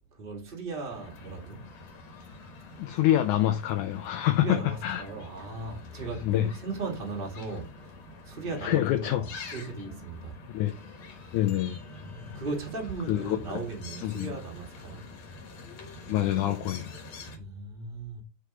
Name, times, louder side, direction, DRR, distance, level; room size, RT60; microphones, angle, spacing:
voice 1, 0.1-1.6 4.4-7.9 8.2-10.4 12.0-15.0 17.3-18.2, right 3 dB, 20° right, 1.4 m, -37 dB
sound 1, 0.9-17.4, left 3 dB, 60° left, 2.6 m, -46 dB
voice 2, 2.8-5.0 6.2-6.5 8.6-9.5 10.5-10.8 11.3-11.8 13.1-13.4 14.0-14.3 16.1-16.9, left 13 dB, 75° left, 2.0 m, -26 dB
5.1 x 5.0 x 5.6 m
omnidirectional pair, 3.8 m